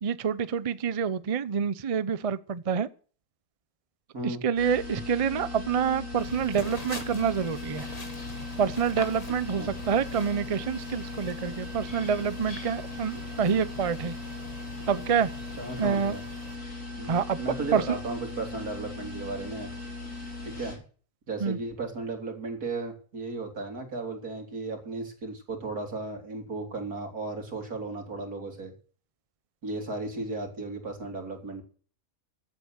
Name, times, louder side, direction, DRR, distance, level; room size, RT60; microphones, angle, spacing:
voice 1, 0.0-2.9 4.2-7.9 8.6-14.1 14.9-15.3 15.8-16.2 17.0-17.4 17.7-18.0 21.4-21.6, right 7 dB, 40° right, 0.5 m, -27 dB
sound 1, 4.6-20.8, left 3 dB, 85° left, 4.6 m, -39 dB
sound 2, 6.2-16.6, left 2 dB, 25° left, 1.8 m, -44 dB
voice 2, 15.6-16.2 17.0-17.1 17.4-19.7 20.4-20.8 21.3-28.7 29.6-31.6, right 3 dB, 85° right, 3.8 m, -35 dB
15.0 x 9.1 x 6.5 m
omnidirectional pair, 1.6 m